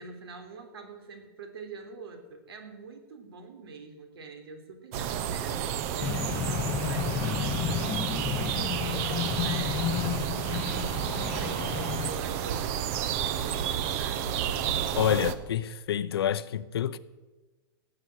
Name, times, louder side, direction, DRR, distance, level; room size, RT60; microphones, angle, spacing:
voice 1, 0.0-14.4, right 4 dB, 75° right, 3.6 m, -45 dB
sound 1, 4.9-15.3, right 9 dB, 35° right, 0.8 m, -31 dB
sound 2, 6.0-12.1, left 10 dB, 15° left, 0.5 m, -32 dB
voice 2, 14.9-17.0, left 9 dB, 80° left, 0.8 m, -28 dB
18.5 x 7.8 x 8.0 m
supercardioid pair, 165°, 13 cm